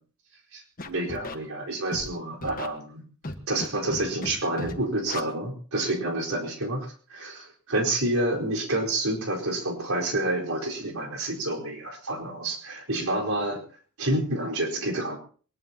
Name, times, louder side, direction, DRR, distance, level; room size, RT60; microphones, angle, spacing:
voice 1, 0.5-3.0 3.5-13.6 14.0-15.2, right 1 dB, 80° right, 0 dB, 4.4 m, -28 dB
Scratching (performance technique), 0.8-1.4 1.9-2.1 2.4-2.7 3.2-3.7 3.9-4.3 4.6-4.7 5.1-5.2, left 2 dB, 40° left, 1.4 m, -34 dB
21.5 x 19.5 x 2.9 m, 0.41 s
head